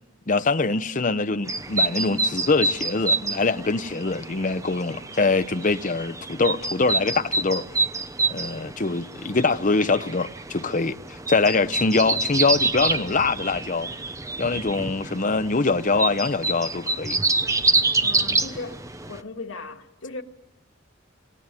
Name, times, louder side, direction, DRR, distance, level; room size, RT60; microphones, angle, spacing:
voice 1, 0.3-7.6 8.3-13.9 14.4-17.2, left 3 dB, 40° left, 0.8 m, -23 dB
sound 1, 1.5-19.2, right 3 dB, 15° right, 0.9 m, -27 dB
voice 2, 18.0-18.8 19.1-20.2, left 3 dB, 90° left, 2.0 m, -37 dB
27.5 x 19.5 x 9.0 m
head